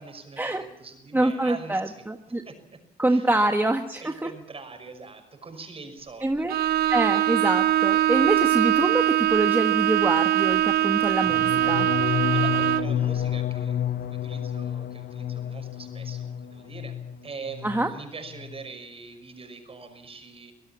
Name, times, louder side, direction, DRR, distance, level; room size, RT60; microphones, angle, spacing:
voice 1, 0.0-2.8 3.1-3.3 4.0-6.6 12.1-20.5, right 4 dB, 35° right, 7 dB, 5.8 m, -43 dB
voice 2, 1.1-2.4 3.0-4.3 6.2-6.5 6.9-11.9 17.6-17.9, right 2 dB, 10° right, 4 dB, 1.5 m, -25 dB
Bowed string instrument, 6.5-13.0, right 13 dB, 75° right, 0.9 m, -22 dB
sound 1, 11.2-17.2 17.5-18.0 18.3-18.6, left 10 dB, 70° left, 1.0 m, -30 dB
25.0 x 16.5 x 7.3 m, 0.81 s
cardioid pair, 85°, 16 cm